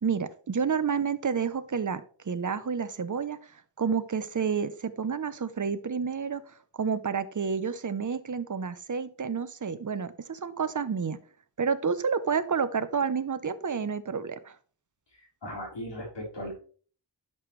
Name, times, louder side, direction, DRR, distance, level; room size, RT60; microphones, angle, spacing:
voice 1, 0.0-11.2 11.6-14.6, right 6 dB, 45° right, 13 dB, 0.8 m, -30 dB
voice 2, 15.2-16.6, equal, 75° left, -1 dB, 4.0 m, -38 dB
11.0 x 7.0 x 3.2 m, 0.43 s
wide cardioid pair, 80°, 42 cm